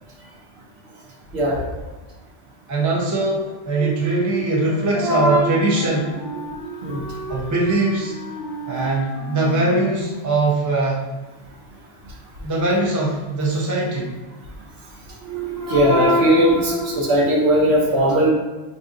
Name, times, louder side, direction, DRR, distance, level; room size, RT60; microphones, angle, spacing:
voice 1, 1.3-1.7 3.8-4.4 5.0-5.6 6.6-7.0 15.2-18.3, equal, 65° right, -1 dB, 0.8 m, -19 dB
voice 2, 2.7-6.2 7.3-8.1 8.7-11.0 12.4-14.1, right 2 dB, 25° right, -4 dB, 0.4 m, -21 dB
Wind instrument woodwind instrument, 4.6-10.5, left 1 dB, 90° left, 0.9 m, -34 dB
2.7 x 2.5 x 3.7 m, 1.2 s
omnidirectional pair, 1.3 m